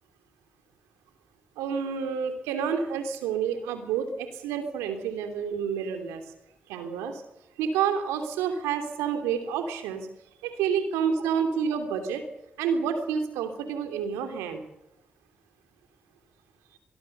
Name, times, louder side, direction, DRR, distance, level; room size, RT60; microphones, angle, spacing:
voice 1, 1.6-6.2 6.7-7.2 7.6-10.1 10.4-12.2 12.6-14.6, right 7 dB, 85° right, 6 dB, 3.1 m, -29 dB
23.0 x 21.5 x 6.8 m, 0.86 s
hypercardioid pair, 40°, 5 cm